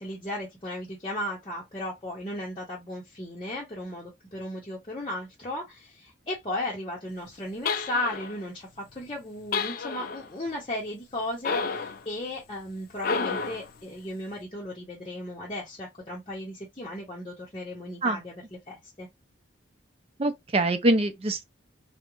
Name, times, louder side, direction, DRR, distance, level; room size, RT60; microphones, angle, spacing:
voice 1, 0.0-19.1, left 1 dB, 30° left, 0.7 m, -35 dB
sound 1, 7.7-8.4 9.5-10.3 11.4-12.0 13.0-13.7, left 5 dB, 50° left, 0.3 m, -30 dB
voice 2, 20.2-21.4, right 2 dB, 30° right, 0.4 m, -24 dB
2.4 x 2.1 x 2.9 m
head